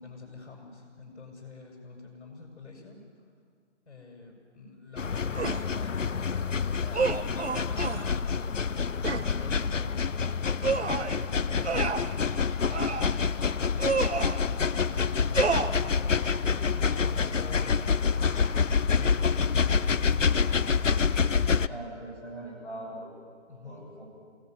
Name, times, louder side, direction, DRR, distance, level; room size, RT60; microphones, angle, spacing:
voice 1, 0.0-3.0 3.9-10.0 10.6-13.9 14.4-18.0 18.4-19.8 23.5-23.9, left 4 dB, 65° left, 3 dB, 7.8 m, -47 dB
sound 1, 5.0-21.7, left 5 dB, 85° left, 1.0 m, -27 dB
sound 2, 5.4-5.7 6.9-8.1 9.0-9.3 10.6-11.2 11.6-12.1 12.7-13.2 13.8-14.4 15.3-15.7, right 5 dB, 65° right, 2.0 m, -29 dB
voice 2, 21.7-23.2 23.6-24.0, right 1 dB, 5° left, -8 dB, 7.5 m, -41 dB
30.0 x 19.5 x 9.7 m, 2.1 s
figure-of-eight pair, 155°, 37 cm